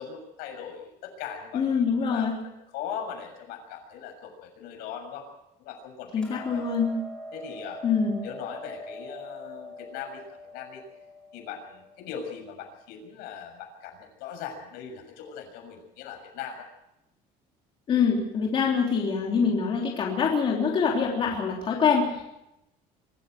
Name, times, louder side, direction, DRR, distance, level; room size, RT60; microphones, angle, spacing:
voice 1, 0.0-2.3 2.7-5.2 5.6-6.7 7.3-7.8 8.2-10.8 11.3-16.7, left 7 dB, 75° left, 3 dB, 6.8 m, -40 dB
voice 2, 1.5-2.3 6.1-6.9 7.8-8.2 17.9-22.2, left 6 dB, 35° left, -1 dB, 3.3 m, -25 dB
Hammer, 6.2-12.4, left 1 dB, 5° left, 4.5 m, -43 dB
24.5 x 14.0 x 7.7 m, 0.87 s
cardioid pair, 165°, 16 cm